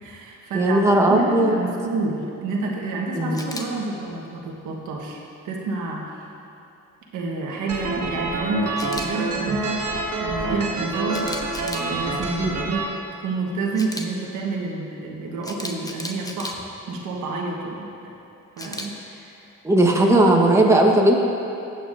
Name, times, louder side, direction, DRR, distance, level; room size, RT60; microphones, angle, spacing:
voice 1, 0.0-6.1 7.1-11.3 11.6-12.9 13.2-17.9 18.6-19.4 19.8-20.3, right 3 dB, 90° right, -1 dB, 1.4 m, -29 dB
voice 2, 0.5-1.5 3.2-3.4 12.4-12.6 19.6-21.1, right 1 dB, 10° right, -1 dB, 1.2 m, -17 dB
Camera, 3.3-3.6 8.8-9.1 11.1-11.9 13.7-14.0 15.4-16.5 18.6-18.9, left 1 dB, 10° left, 0.8 m, -34 dB
sound 1, 7.7-12.8, right 3 dB, 55° right, 1.8 m, -27 dB
15.0 x 8.3 x 2.6 m, 2.8 s
cardioid pair, 90°, 30 cm